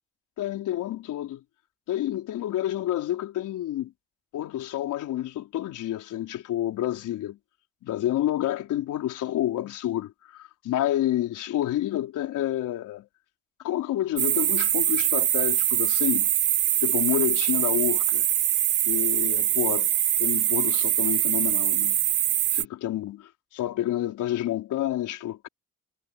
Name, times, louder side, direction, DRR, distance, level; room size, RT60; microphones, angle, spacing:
voice 1, 0.4-1.4 1.9-3.9 4.3-7.4 7.8-13.1 13.6-16.3 16.8-18.3 18.9-19.9 20.2-22.0 22.5-25.5, left 13 dB, 85° left, 4.5 m, -29 dB
sound 1, 14.2-22.6, right 12 dB, 80° right, 2.5 m, -23 dB
cardioid pair, 90°, 30 cm